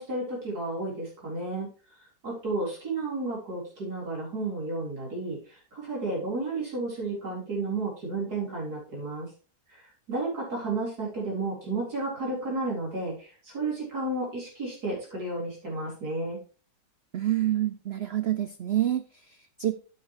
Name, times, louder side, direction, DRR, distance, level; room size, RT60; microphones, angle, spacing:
voice 1, 0.0-1.7 2.2-9.3 9.7-16.4, right 2 dB, 60° right, -4 dB, 4.7 m, -32 dB
voice 2, 17.1-19.7, right 12 dB, 90° right, 11 dB, 0.5 m, -28 dB
9.5 x 8.6 x 3.1 m, 0.37 s
omnidirectional pair, 1.8 m